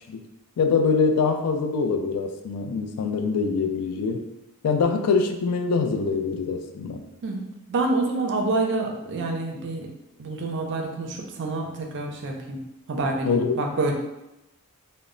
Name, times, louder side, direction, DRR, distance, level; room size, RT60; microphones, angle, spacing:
voice 1, 0.6-4.2 4.6-7.0 13.2-13.5, left 5 dB, 85° left, 6 dB, 0.3 m, -24 dB
voice 2, 7.2-9.9 10.2-12.6 12.9-13.9, right 2 dB, 55° right, 2 dB, 0.4 m, -27 dB
2.0 x 2.0 x 3.6 m, 0.92 s
head